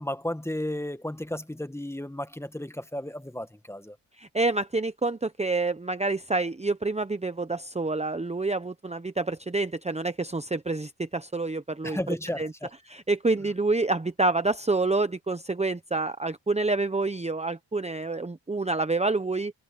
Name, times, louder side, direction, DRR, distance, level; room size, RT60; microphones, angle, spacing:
voice 1, 0.0-4.0 11.8-12.7, left 1 dB, 5° left, 1.5 m, -33 dB
voice 2, 4.2-12.0 12.4-12.5 12.9-19.5, right 3 dB, 15° right, 0.9 m, -27 dB
cardioid pair, 70°, 41 cm